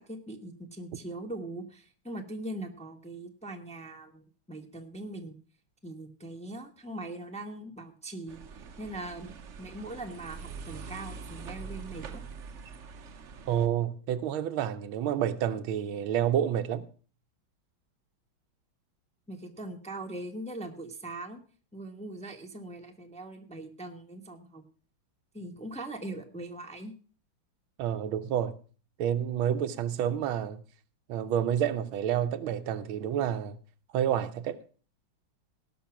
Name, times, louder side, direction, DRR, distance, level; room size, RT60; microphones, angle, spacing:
voice 1, 0.0-5.3 5.8-12.2 19.3-21.4 21.7-24.6 25.3-26.9, right 1 dB, 5° left, 0.9 m, -41 dB
sound 1, 8.3-13.7, right 5 dB, 55° right, 0.9 m, -44 dB
voice 2, 13.5-16.9 27.8-28.6 29.0-30.6 31.1-33.6 33.9-34.6, right 9 dB, 90° right, 1.7 m, -29 dB
18.0 x 6.1 x 5.8 m
omnidirectional pair, 2.2 m